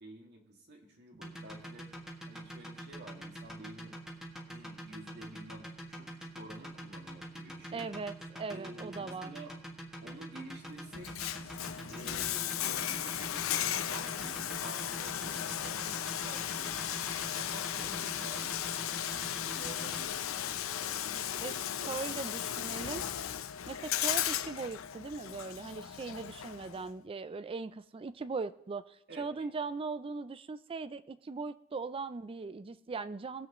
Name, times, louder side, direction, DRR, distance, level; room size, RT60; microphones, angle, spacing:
voice 1, 0.0-1.9 2.3-4.0 4.5-7.9 8.4-9.5 10.0-11.3 11.9-17.0 17.4-18.6 18.8-22.9 29.1-29.5, right 2 dB, 55° right, 1 dB, 2.1 m, -51 dB
sound 1, 1.1-20.0, equal, ahead, 1.7 m, -45 dB
voice 2, 7.7-9.3 21.4-21.5 21.9-23.0 23.7-33.5, right 4 dB, 25° right, 14 dB, 0.4 m, -39 dB
Bathtub (filling or washing), 10.9-26.9, left 10 dB, 90° left, 0.6 m, -36 dB
20.5 x 7.6 x 3.0 m, 0.90 s
head